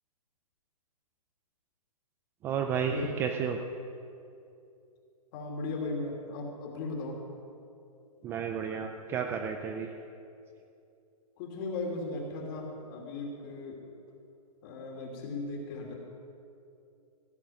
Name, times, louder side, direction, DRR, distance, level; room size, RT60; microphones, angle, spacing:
voice 1, 2.4-3.6 8.2-9.9, right 7 dB, 10° right, 4 dB, 0.4 m, -32 dB
voice 2, 5.3-7.2 11.4-13.8 14.6-15.9, left 2 dB, 35° left, 1 dB, 2.7 m, -37 dB
16.0 x 6.8 x 9.0 m, 2.6 s
hypercardioid pair, 150°, 20 cm